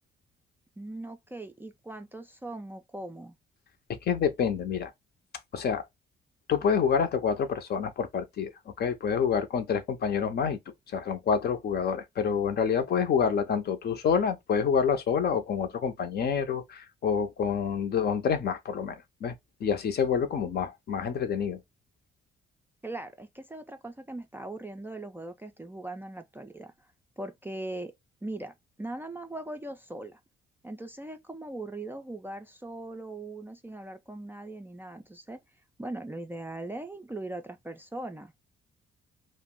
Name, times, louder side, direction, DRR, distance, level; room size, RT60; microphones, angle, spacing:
voice 1, 0.8-3.4 22.8-26.9 27.2-27.9 28.2-30.2 30.6-35.4 35.8-38.3, right 2 dB, 10° right, 0.3 m, -40 dB
voice 2, 3.9-4.9 5.5-5.8 6.5-10.6 10.9-19.4 19.6-21.6, left 7 dB, 55° left, 0.6 m, -27 dB
2.4 x 2.0 x 3.6 m
cardioid pair, 90°, 20 cm